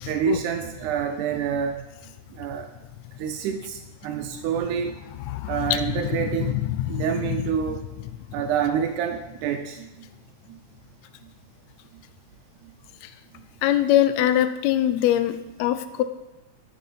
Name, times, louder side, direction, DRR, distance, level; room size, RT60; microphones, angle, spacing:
voice 1, 0.0-1.9 2.3-2.7 3.2-5.0 5.5-6.6 6.9-7.9 8.3-9.9 10.5-10.6, right 8 dB, 80° right, 5 dB, 2.1 m, -27 dB
voice 2, 5.3-5.8 6.8-7.0 13.6-16.0, left 12 dB, 80° left, 11 dB, 1.6 m, -22 dB
9.1 x 5.9 x 5.4 m, 1.0 s
omnidirectional pair, 3.5 m